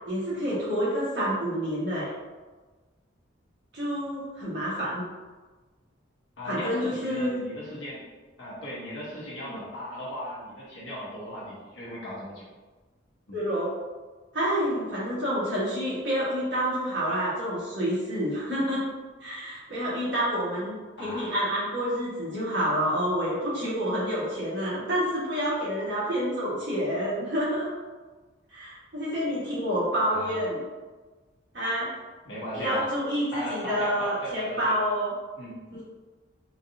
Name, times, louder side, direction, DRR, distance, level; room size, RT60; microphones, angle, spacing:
voice 1, 0.1-2.1 3.7-5.1 6.4-7.4 9.5-9.6 13.3-13.7 14.3-18.9 19.2-20.7 21.0-27.7 28.5-30.6 31.5-31.9 32.5-35.1 35.7-35.8, equal, 60° right, -8 dB, 1.4 m, -28 dB
voice 2, 6.4-8.0 8.4-12.4 13.3-13.4 21.0-21.3 30.1-30.4 32.2-32.9 33.3-34.7 35.4-35.6, equal, 75° left, -6 dB, 0.8 m, -37 dB
3.9 x 2.5 x 2.6 m, 1.3 s
head